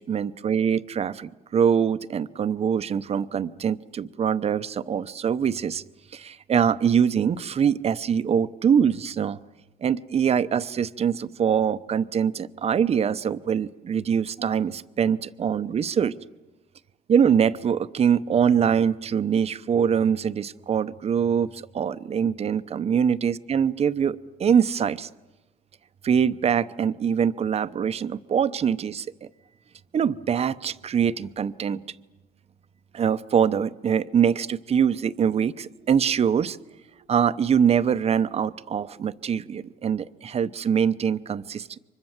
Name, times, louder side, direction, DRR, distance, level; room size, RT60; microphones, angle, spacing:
voice 1, 0.0-5.8 6.1-9.4 9.8-16.1 17.1-25.1 26.0-29.3 29.9-31.8 32.9-36.6 37.1-41.8, right 7 dB, 35° right, 13 dB, 0.8 m, -23 dB
29.0 x 24.5 x 7.4 m, 1.1 s
cardioid pair, 110°, 17 cm